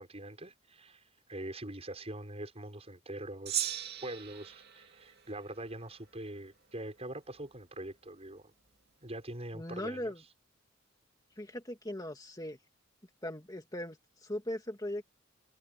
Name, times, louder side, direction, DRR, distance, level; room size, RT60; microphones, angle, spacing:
voice 1, 0.0-8.5 9.0-10.1, right 1 dB, 30° right, 6.4 m, -43 dB
Gong, 3.5-6.1, right 11 dB, 55° right, 2.5 m, -39 dB
voice 2, 9.5-10.2 11.4-12.6 13.2-15.0, left 1 dB, 20° left, 2.3 m, -39 dB
head